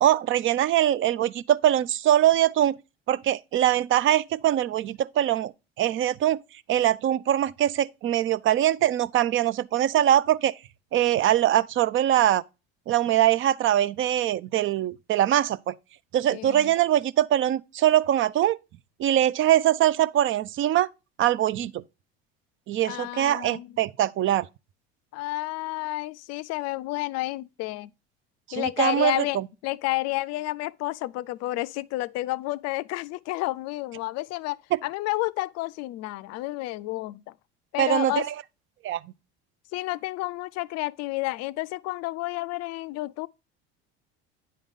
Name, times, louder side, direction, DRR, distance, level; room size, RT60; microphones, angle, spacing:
voice 1, 0.0-2.8 3.1-5.5 5.8-6.4 6.7-10.5 10.9-12.4 12.9-15.7 16.1-18.6 19.0-20.9 21.2-21.8 22.7-24.5 28.5-29.5 34.7-34.8 37.8-38.3 38.8-39.0, right 12 dB, 40° right, 0.4 m, -22 dB
voice 2, 16.3-16.7 22.8-23.7 25.1-27.9 28.5-37.2 37.7-38.3 39.7-43.3, left 19 dB, 55° left, 0.4 m, -30 dB
9.5 x 3.8 x 3.6 m
supercardioid pair, 85°, 31 cm